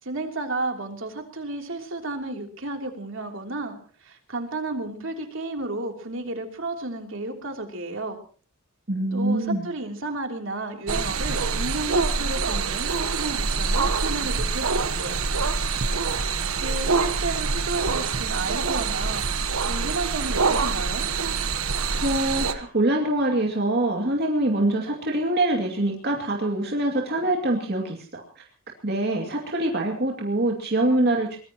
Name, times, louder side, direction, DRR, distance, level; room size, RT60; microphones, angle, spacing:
voice 1, 0.0-8.2 9.1-15.2 16.4-19.2 19.6-21.1, right 2 dB, 65° right, 3 dB, 3.2 m, -32 dB
voice 2, 8.9-9.6 21.9-28.2 28.8-31.4, right 1 dB, 50° right, 0 dB, 2.5 m, -24 dB
sound 1, 10.9-22.5, right 4 dB, 85° right, 1.3 m, -25 dB
23.0 x 20.5 x 3.0 m, 0.39 s
head